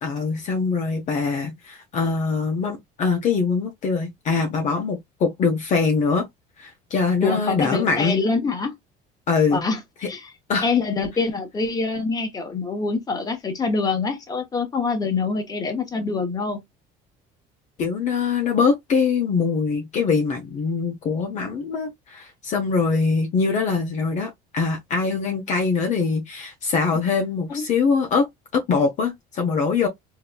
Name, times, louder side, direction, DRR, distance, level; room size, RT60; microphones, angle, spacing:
voice 1, 0.0-6.3 6.6-8.2 9.3-9.6 10.0-10.1 10.5-10.7 17.8-28.3 28.5-29.9, left 5 dB, 40° left, 0.9 m, -23 dB
voice 2, 7.2-8.8 9.5-9.8 10.1-10.2 10.6-16.6 27.5-27.6, left 4 dB, 20° left, 1.1 m, -25 dB
3.8 x 2.8 x 2.2 m
cardioid pair, 145°, 18 cm